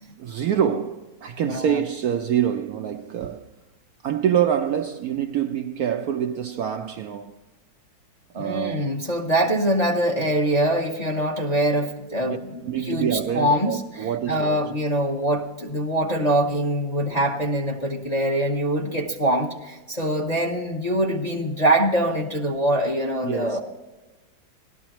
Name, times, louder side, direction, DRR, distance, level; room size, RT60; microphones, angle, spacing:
voice 1, 0.2-3.5 4.0-7.4 8.3-8.9 12.2-12.4 12.7-14.6 23.2-23.6, right 9 dB, 70° right, 0.9 m, -26 dB
voice 2, 1.4-1.8 8.3-23.6, right 1 dB, 30° left, 0.8 m, -24 dB
17.5 x 12.5 x 3.0 m
omnidirectional pair, 2.0 m